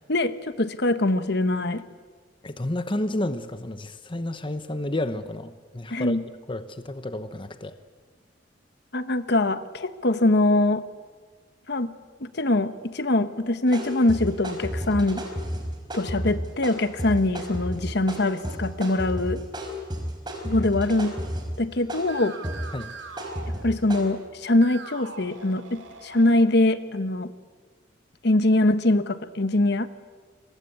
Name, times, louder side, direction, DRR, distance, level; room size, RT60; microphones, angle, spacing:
voice 1, 0.1-1.8 5.9-6.2 8.9-10.9 11.7-11.9 12.2-15.2 15.9-19.4 20.4-21.2 21.6-22.4 23.6-27.3 28.2-29.9, left 2 dB, 60° left, 11 dB, 1.3 m, -23 dB
voice 2, 2.4-6.2 6.5-7.7 22.7-22.9, left 1 dB, 25° left, 10 dB, 1.0 m, -31 dB
sound 1, 13.7-24.0, equal, 25° right, 4.9 m, -32 dB
sound 2, 20.9-21.6 22.0-24.2 24.5-26.4, right 4 dB, 80° right, 2.9 m, -43 dB
29.5 x 23.5 x 8.5 m, 1.5 s
head